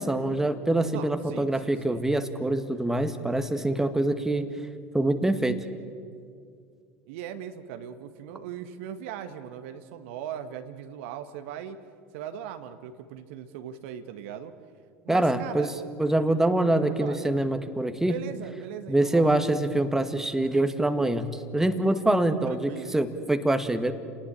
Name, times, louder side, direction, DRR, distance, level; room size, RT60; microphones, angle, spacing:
voice 1, 0.0-4.5 4.9-5.6 15.1-15.7 16.0-18.2 18.9-23.9, right 1 dB, 5° right, 8 dB, 1.9 m, -25 dB
voice 2, 0.9-2.0 7.1-11.8 12.1-14.5 15.0-15.7 16.4-17.2 18.0-19.4 22.4-23.0, right 9 dB, 65° right, 8 dB, 1.5 m, -39 dB
29.5 x 19.0 x 8.8 m, 2.3 s
figure-of-eight pair, 70°, 7 cm